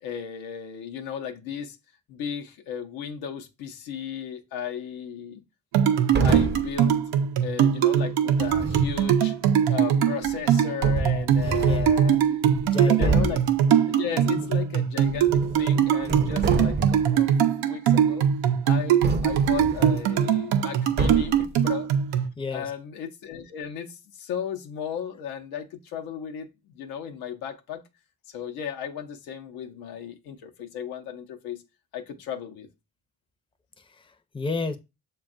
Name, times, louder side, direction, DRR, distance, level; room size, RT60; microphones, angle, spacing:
voice 1, 0.0-1.8 2.1-5.4 6.2-7.0 7.4-9.3 9.7-12.4 12.8-13.5 13.9-17.3 17.6-18.3 18.6-21.9 22.5-27.8 28.3-31.6 31.9-32.7, left 8 dB, 80° left, 0.6 m, -35 dB
sound 1, 5.7-22.3, right 9 dB, 85° right, 0.6 m, -22 dB
sound 2, 6.1-6.7 8.4-9.0 10.3-10.4 10.8-12.0 12.5-12.7 13.0-13.5 15.0-15.7 16.0-17.1 19.0-20.0 21.0-21.5, right 3 dB, 30° right, 0.6 m, -28 dB
voice 2, 11.4-11.9 12.6-13.4 14.4-14.5 22.4-22.7 33.8-34.8, left 4 dB, 15° left, 0.5 m, -32 dB
6.8 x 2.3 x 2.4 m
supercardioid pair, 50°, 35 cm